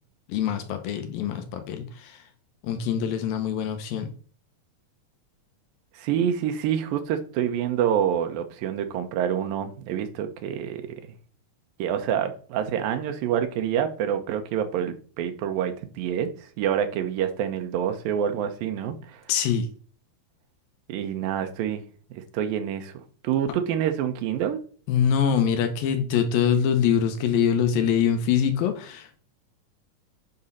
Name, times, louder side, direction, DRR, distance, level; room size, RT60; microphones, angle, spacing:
voice 1, 0.3-2.2 2.6-4.1 19.3-19.7 24.9-29.2, left 8 dB, 80° left, 2.7 m, -24 dB
voice 2, 6.0-10.8 11.8-19.2 20.9-21.8 22.1-22.9 23.2-24.6, right 9 dB, 80° right, 2.6 m, -27 dB
8.7 x 3.9 x 5.6 m
omnidirectional pair, 4.2 m